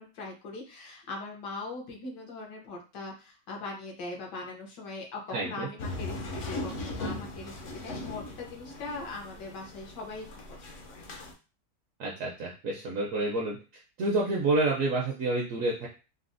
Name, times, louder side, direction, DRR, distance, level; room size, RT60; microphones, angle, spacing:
voice 1, 0.0-7.5 7.8-10.3 10.9-11.1, left 3 dB, 75° left, 1 dB, 1.5 m, -40 dB
voice 2, 5.3-5.7 12.0-13.6 14.0-15.9, right 2 dB, 65° right, -2 dB, 0.8 m, -28 dB
sound 1, 5.8-11.3, left 2 dB, 60° left, 0.8 m, -39 dB
3.9 x 2.0 x 2.5 m, 0.32 s
omnidirectional pair, 1.9 m